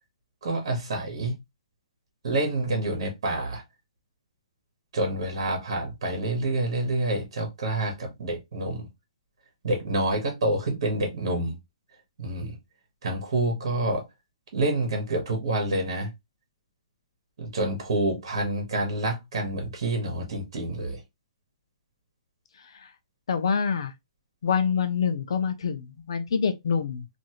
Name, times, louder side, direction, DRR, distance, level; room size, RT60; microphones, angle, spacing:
voice 1, 0.4-1.3 2.2-3.6 4.9-8.9 9.6-11.6 12.2-12.6 13.0-14.0 14.5-16.1 17.4-21.0, right 2 dB, 50° right, 1.3 m, -27 dB
voice 2, 23.3-23.9 24.4-27.0, left 6 dB, 55° left, 0.6 m, -26 dB
3.1 x 2.6 x 2.9 m
hypercardioid pair, 175°, 3 cm